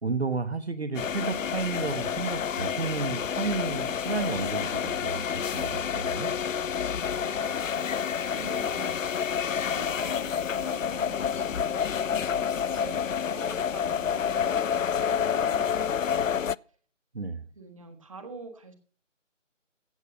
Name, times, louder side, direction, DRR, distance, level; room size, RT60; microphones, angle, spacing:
voice 1, 0.0-5.2 5.5-6.3 17.1-17.5, right 4 dB, 55° right, 11 dB, 1.4 m, -32 dB
sound 1, 0.9-16.5, left 7 dB, 80° left, 0.5 m, -29 dB
voice 2, 7.1-7.6 8.3-9.0 9.6-16.4 17.5-18.7, right 3 dB, 25° right, 7 dB, 1.5 m, -45 dB
16.0 x 7.3 x 6.5 m, 0.42 s
figure-of-eight pair, 160°, 38 cm